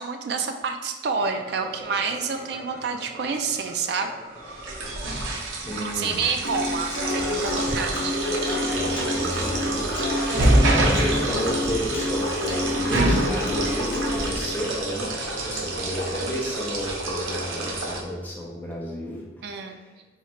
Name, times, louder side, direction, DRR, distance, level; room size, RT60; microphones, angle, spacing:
voice 1, 0.0-4.1 5.7-8.1 19.4-19.8, right 5 dB, 55° right, 6 dB, 0.3 m, -28 dB
sound 1, 1.0-4.9 5.4-5.5 6.0-6.4, equal, 15° right, 1.1 m, -43 dB
sound 2, 4.4-18.0, right 1 dB, 90° right, 0.7 m, -26 dB
voice 2, 5.6-6.2 8.7-9.9 10.7-19.2, equal, 10° left, -4 dB, 0.6 m, -32 dB
Human voice / Acoustic guitar, 6.4-14.4, left 2 dB, 75° left, 0.7 m, -29 dB
3.0 x 2.4 x 4.3 m, 1.2 s
head